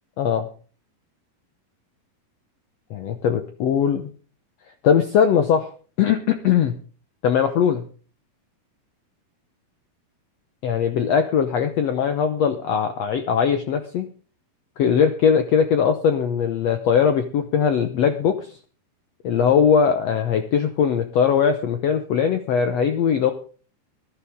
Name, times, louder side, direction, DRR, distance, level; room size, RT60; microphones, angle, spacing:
voice 1, 0.2-0.5 2.9-4.1 4.8-5.7 6.0-6.8 7.2-7.8 10.6-14.1 14.8-18.6 19.2-23.3, left 7 dB, 80° left, 7 dB, 1.4 m, -20 dB
19.5 x 13.0 x 3.6 m, 0.40 s
omnidirectional pair, 4.2 m